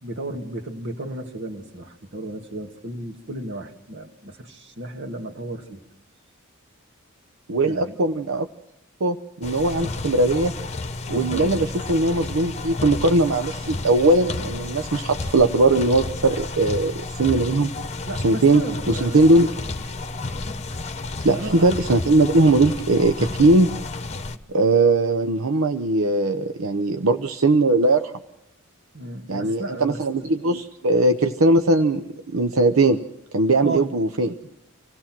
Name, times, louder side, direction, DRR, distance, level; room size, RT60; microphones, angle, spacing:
voice 1, 0.0-5.8 7.6-8.0 11.1-11.6 18.1-19.5 21.3-21.7 28.9-30.3 33.6-33.9, right 2 dB, 60° right, 4 dB, 2.1 m, -34 dB
voice 2, 7.5-8.5 9.0-10.5 11.1-17.7 18.2-18.6 18.9-19.5 21.2-23.7 24.5-28.1 29.3-32.0 32.3-33.0 33.3-34.3, right 2 dB, 85° right, 7 dB, 0.8 m, -19 dB
sound 1, 9.4-24.4, left 3 dB, 35° left, 1.0 m, -31 dB
25.5 x 17.0 x 6.0 m, 0.85 s
head